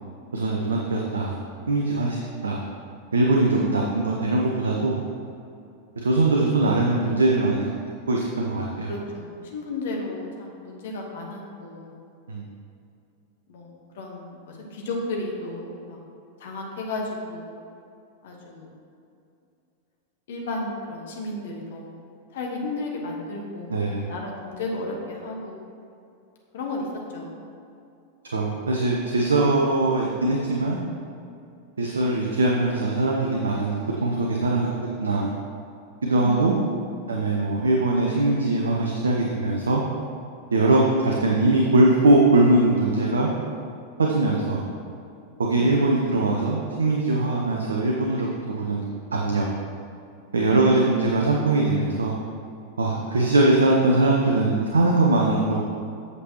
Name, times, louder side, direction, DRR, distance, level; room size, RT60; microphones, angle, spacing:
voice 1, 0.3-1.4 1.7-2.2 2.4-2.6 3.1-5.0 6.0-7.7 8.1-8.9 12.3-12.4 23.7-24.1 28.3-30.8 31.8-34.7 35.0-35.3 36.0-36.5 37.1-39.8 40.5-43.3 44.0-44.6 45.4-48.8 49.1-49.5 50.3-52.2 52.8-55.6, right 2 dB, 70° right, -1 dB, 0.7 m, -21 dB
voice 2, 8.9-12.0 13.5-16.0 16.4-17.5 18.2-18.7 20.3-22.0 22.3-25.6 26.5-27.4 36.1-37.1 44.2-44.4 45.5-45.9 50.4-51.1, left 1 dB, 60° left, 0 dB, 1.3 m, -33 dB
8.1 x 6.8 x 3.0 m, 2.6 s
figure-of-eight pair, 90°, 0 cm